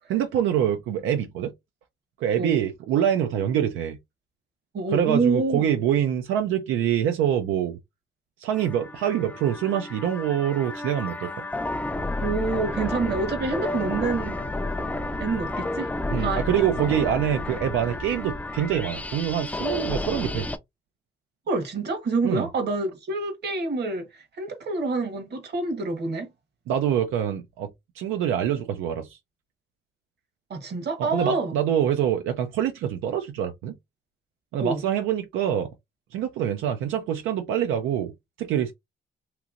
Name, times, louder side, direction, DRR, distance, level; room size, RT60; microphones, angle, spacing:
voice 1, 0.1-1.5 2.2-4.0 4.9-7.8 8.4-11.3 16.1-20.5 22.2-22.5 26.7-27.7 28.0-29.2 31.0-33.8 34.5-35.7 36.1-38.7, right 10 dB, 90° right, 0.5 m, -25 dB
voice 2, 4.7-5.6 12.2-14.4 15.2-15.9 16.1-16.7 21.5-24.1 24.4-26.3 30.5-31.5 34.6-34.8, right 3 dB, 55° right, 1.1 m, -27 dB
sound 1, 8.5-20.6, left 2 dB, 5° left, 0.4 m, -31 dB
3.0 x 2.8 x 2.4 m
cardioid pair, 90°, 20 cm